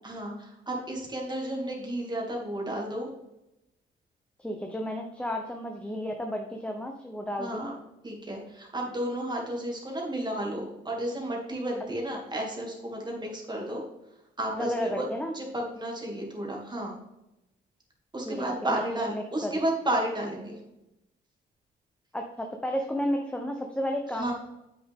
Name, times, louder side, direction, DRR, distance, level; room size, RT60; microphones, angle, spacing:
voice 1, 0.0-3.1 7.4-7.8 8.0-13.8 14.4-15.1 15.3-17.0 18.1-20.6 24.1-24.3, right 1 dB, 20° right, -1 dB, 2.5 m, -32 dB
voice 2, 4.4-7.7 14.6-15.3 18.3-18.4 18.7-18.8 19.1-19.5 22.1-24.3, equal, 5° left, 3 dB, 0.8 m, -32 dB
7.9 x 6.3 x 3.6 m, 0.91 s
cardioid pair, 90°, 20 cm